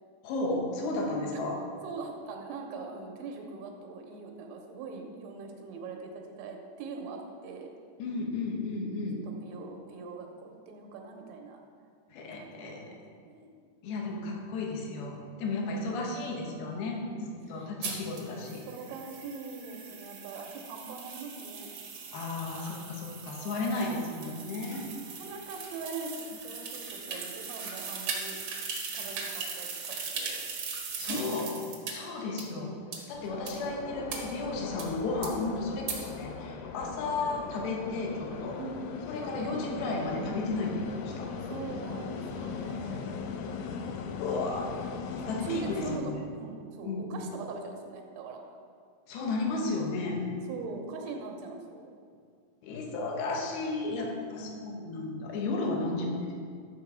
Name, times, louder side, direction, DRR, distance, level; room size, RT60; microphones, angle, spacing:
voice 1, 0.2-1.6 8.0-9.2 12.1-12.9 13.8-18.6 22.1-24.9 31.0-31.6 31.9-32.7 33.1-38.6 39.1-40.7 41.0-41.3 44.2-44.7 45.3-46.2 46.8-47.1 49.1-50.2 52.6-56.3, left 3 dB, 70° left, 0 dB, 2.8 m, -33 dB
voice 2, 1.8-7.7 9.2-11.6 12.3-13.6 17.1-17.3 17.5-17.7 18.3-21.7 23.4-24.2 25.0-28.4 28.9-30.4 32.1-34.0 36.1-36.3 36.9-37.1 38.6-38.9 39.2-39.6 41.4-43.2 44.1-44.4 45.2-48.6 50.5-51.9 54.1-54.7, right 4 dB, 85° right, 2 dB, 3.3 m, -42 dB
sound 1, 17.8-31.9 32.4-32.5 32.9-33.0 33.5-33.6 34.1-34.2 34.8-34.9 35.2-35.3 35.9-36.0, right 5 dB, 70° right, 1.6 m, -39 dB
sound 2, 33.1-46.0, left 5 dB, 85° left, 3.0 m, -39 dB
12.0 x 6.7 x 4.7 m, 2.1 s
omnidirectional pair, 5.4 m